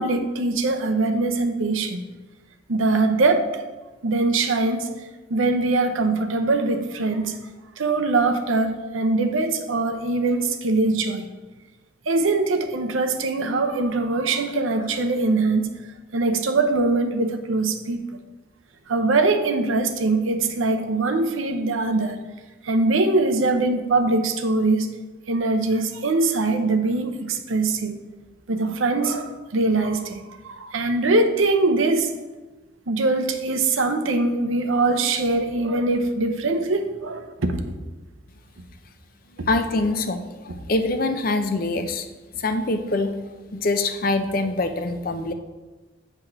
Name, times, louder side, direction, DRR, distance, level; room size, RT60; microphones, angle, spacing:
voice 1, 0.0-2.0 2.7-3.6 4.0-4.9 5.3-7.4 7.8-11.3 12.1-15.7 16.1-18.1 18.9-22.2 22.6-24.9 25.3-27.9 28.5-32.1 32.9-37.7 39.4-39.5, right 3 dB, 85° right, 7 dB, 0.7 m, -22 dB
voice 2, 39.5-42.1 42.4-43.2 43.5-45.3, left 2 dB, 45° left, 8 dB, 0.5 m, -24 dB
9.3 x 3.5 x 5.8 m, 1.2 s
head